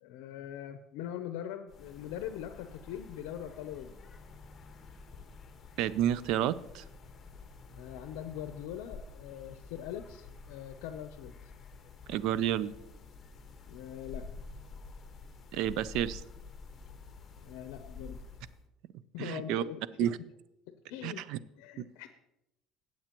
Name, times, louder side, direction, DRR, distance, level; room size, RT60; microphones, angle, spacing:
voice 1, 0.0-4.0 7.7-11.3 13.7-14.3 17.4-18.2 19.1-20.1 20.9-21.2 21.6-22.1, left 10 dB, 85° left, 8 dB, 0.6 m, -42 dB
sound 1, 1.7-18.6, left 4 dB, 30° left, 1.2 m, -49 dB
voice 2, 5.8-6.8 12.1-12.7 15.5-16.2 19.2-19.6 20.0-20.1 21.0-21.4 21.8-21.9, right 11 dB, 70° right, 17 dB, 0.4 m, -30 dB
16.0 x 7.7 x 3.0 m, 0.87 s
cardioid pair, 120°, 0 cm